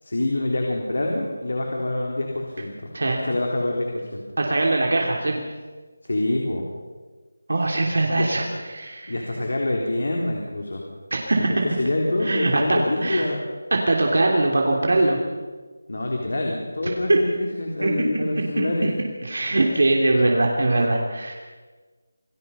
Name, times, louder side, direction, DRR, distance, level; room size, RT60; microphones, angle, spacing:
voice 1, 0.0-2.9 3.2-4.2 6.0-6.7 8.1-8.3 9.1-10.8 11.4-11.5 11.8-13.4 15.9-18.9, left 1 dB, 70° left, 0 dB, 3.8 m, -26 dB
voice 2, 4.4-5.4 7.5-8.5 8.7-9.2 11.1-11.6 12.2-13.3 13.9-15.2 16.8-17.2 17.8-17.9 18.6-18.9 19.2-21.3, right 2 dB, 65° right, 0 dB, 3.2 m, -21 dB
27.5 x 16.5 x 5.7 m, 1.4 s
figure-of-eight pair, 175°, 0 cm